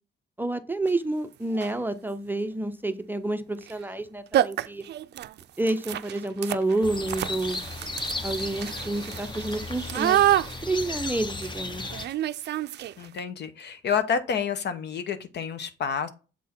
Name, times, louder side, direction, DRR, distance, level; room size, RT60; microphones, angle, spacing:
voice 1, 0.4-4.9 5.6-7.6 8.2-10.2 10.6-11.8, right 2 dB, 10° right, 0.6 m, -29 dB
sound 1, 0.9-1.0 1.5-1.9 3.6-4.0 4.3-13.2, right 12 dB, 60° right, 0.4 m, -29 dB
sound 2, 6.8-12.1, left 3 dB, 25° left, 0.8 m, -35 dB
voice 2, 13.0-16.1, left 7 dB, 60° left, 0.9 m, -29 dB
7.5 x 3.6 x 4.3 m
cardioid pair, 90°, 20 cm